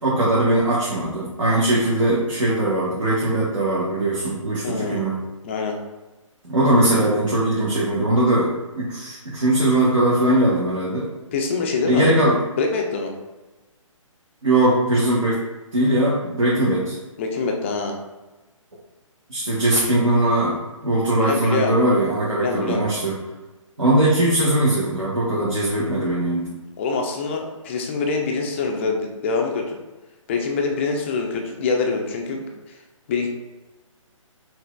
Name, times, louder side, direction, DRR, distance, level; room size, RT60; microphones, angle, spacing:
voice 1, 0.0-5.2 6.4-11.1 11.9-12.4 14.4-15.4 15.7-17.0 19.3-23.2 23.8-26.5, right 1 dB, 70° right, -7 dB, 1.0 m, -20 dB
voice 2, 4.6-5.0 5.4-5.8 11.3-12.1 12.6-13.1 17.2-18.0 21.1-21.8 22.3-22.8 26.8-29.8 30.3-32.5 33.1-33.3, left 4 dB, 20° left, 2 dB, 0.4 m, -24 dB
5.8 x 2.4 x 2.2 m, 1.1 s
figure-of-eight pair, 135°, 17 cm